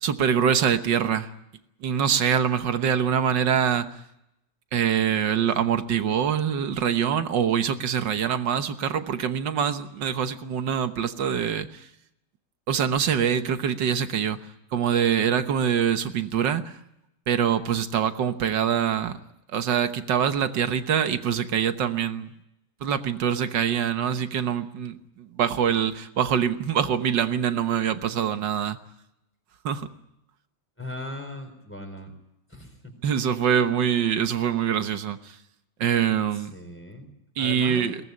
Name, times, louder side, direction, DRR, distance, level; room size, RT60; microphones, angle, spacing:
voice 1, 0.0-1.3 1.8-3.9 4.7-11.8 12.7-14.4 14.7-16.7 17.3-19.2 19.5-22.3 22.8-28.8 29.6-29.9 33.0-35.2 35.8-36.5 37.4-38.0, right 8 dB, 75° right, 10 dB, 1.8 m, -24 dB
voice 2, 30.8-32.1 32.5-32.9 36.3-38.0, left 1 dB, 5° left, 5 dB, 4.3 m, -39 dB
21.5 x 18.5 x 9.7 m, 0.84 s
omnidirectional pair, 2.0 m